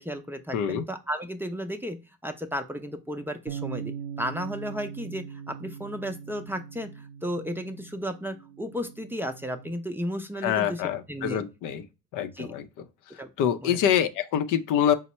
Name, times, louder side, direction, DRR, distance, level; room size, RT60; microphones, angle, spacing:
voice 1, 0.0-2.0 2.2-3.9 4.2-10.8 11.1-11.4 12.4-12.5 13.2-13.3 13.6-13.9, equal, 5° right, 0.5 m, -34 dB
voice 2, 0.5-0.9 10.4-11.8 12.1-12.7 13.4-14.9, left 9 dB, 70° left, 0.6 m, -25 dB
Bass guitar, 3.5-9.7, right 7 dB, 70° right, 0.5 m, -41 dB
4.3 x 2.0 x 4.1 m
supercardioid pair, 80°, 32 cm